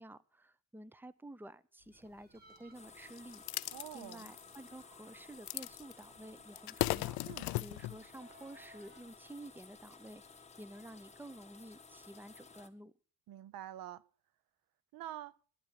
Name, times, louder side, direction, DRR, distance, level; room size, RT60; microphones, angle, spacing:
voice 1, 0.0-3.4 3.9-7.2 7.6-10.2 10.6-12.9, right 1 dB, 5° right, 0.7 m, -51 dB
sound 1, 1.9-9.0, right 1 dB, 25° right, 1.7 m, -65 dB
sound 2, 2.7-12.7, left 5 dB, 20° left, 1.5 m, -56 dB
sound 3, 3.2-4.7 5.5-6.1 6.4-8.0, left 18 dB, 90° left, 0.6 m, -37 dB
voice 2, 3.7-4.3 7.2-7.5 13.3-14.0 14.9-15.3, right 12 dB, 75° right, 0.8 m, -46 dB
11.0 x 10.5 x 6.7 m
cardioid pair, 95°, 35 cm